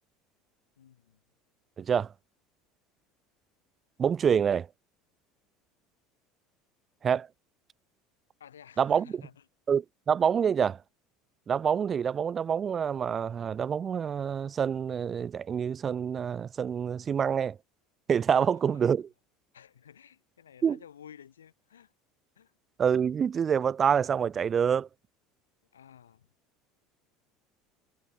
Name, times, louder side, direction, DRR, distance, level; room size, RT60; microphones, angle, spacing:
voice 1, 0.8-1.2 8.4-9.4 18.3-19.0 19.5-21.9 22.3-22.5 25.7-26.3, left 9 dB, 80° left, 5.1 m, -53 dB
voice 2, 1.8-2.1 4.0-4.7 7.0-7.3 8.8-9.2 9.7-10.8 11.5-17.6 18.1-19.1 20.6-20.8 22.8-24.9, right 7 dB, 35° right, 1.5 m, -27 dB
figure-of-eight pair, 70°, 0 cm